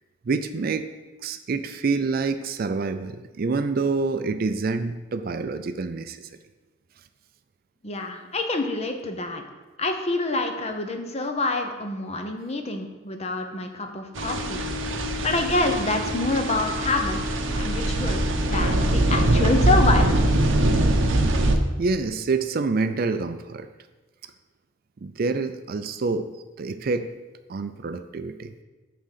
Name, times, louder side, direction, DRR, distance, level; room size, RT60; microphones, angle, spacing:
voice 1, 0.2-0.9 1.2-6.3 21.8-23.7 25.0-26.3 26.6-27.1 27.5-28.5, right 4 dB, 45° right, 10 dB, 0.4 m, -27 dB
voice 2, 7.8-9.4 9.8-14.6 15.2-17.2 17.6-20.2, left 2 dB, 30° left, 5 dB, 0.8 m, -26 dB
sound 1, 14.2-21.6, right 1 dB, 65° right, 0.8 m, -22 dB
9.2 x 3.8 x 6.6 m, 1.2 s
head